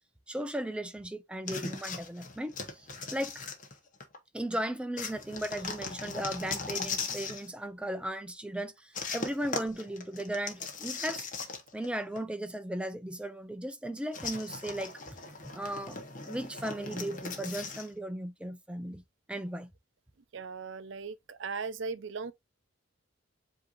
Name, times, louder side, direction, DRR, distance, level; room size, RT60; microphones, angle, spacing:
voice 1, 0.3-3.4 4.3-11.3 11.7-14.9 15.5-16.0 16.3-19.0 19.3-19.7, right 1 dB, 5° right, 0.4 m, -36 dB
sound 1, 1.5-4.2 5.0-7.5 8.9-11.9 12.2-12.3 14.1-17.9, left 4 dB, 35° left, 0.8 m, -39 dB
voice 2, 20.3-22.3, right 5 dB, 60° right, 0.5 m, -38 dB
7.7 x 2.8 x 2.4 m
head